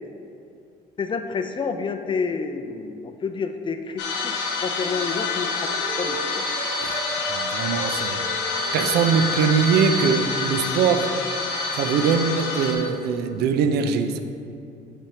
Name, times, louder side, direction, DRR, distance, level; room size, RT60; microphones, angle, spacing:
voice 1, 1.0-6.5, left 5 dB, 30° left, 7 dB, 0.4 m, -29 dB
sound 1, 4.0-12.7, left 4 dB, 80° left, 1.0 m, -27 dB
Wind instrument woodwind instrument, 4.6-10.1, right 3 dB, 45° right, 0.9 m, -38 dB
voice 2, 7.3-8.3 8.7-11.1 11.7-14.2, right 6 dB, 75° right, 8 dB, 0.5 m, -22 dB
5.7 x 3.4 x 5.8 m, 2.5 s
cardioid pair, 110°, 17 cm